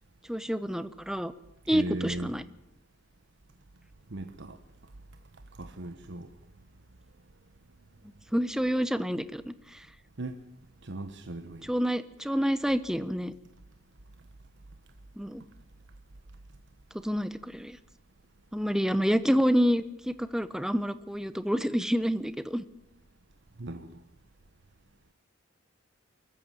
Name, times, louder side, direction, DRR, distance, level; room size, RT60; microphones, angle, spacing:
voice 1, 0.3-1.3 1.7-2.4 8.3-9.8 11.6-13.3 15.2-15.4 17.0-17.8 18.5-22.6, equal, 5° right, 0.9 m, -28 dB
voice 2, 1.7-2.3 4.1-4.6 5.5-6.3 10.2-10.4 10.8-11.7 23.6-24.0, right 2 dB, 60° right, 1.1 m, -38 dB
23.5 x 14.5 x 9.1 m
head